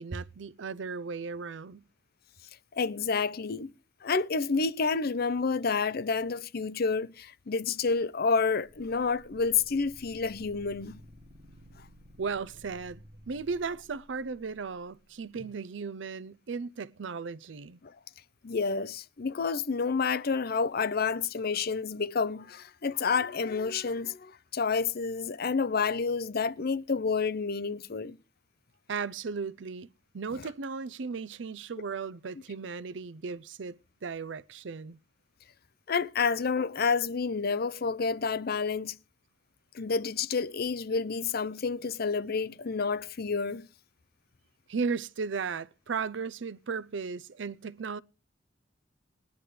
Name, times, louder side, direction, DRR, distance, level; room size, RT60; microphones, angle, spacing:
voice 1, 0.0-1.8 12.2-17.8 28.9-29.9 30.1-35.0 44.7-48.0, right 5 dB, 75° right, 0.5 m, -36 dB
voice 2, 2.7-3.7 4.0-11.0 17.8-18.0 18.4-28.2 35.9-39.0 39.7-43.7, left 5 dB, 55° left, 0.6 m, -29 dB
sound 1, 8.7-14.8, equal, 35° right, 1.5 m, -54 dB
20.0 x 10.5 x 3.3 m
head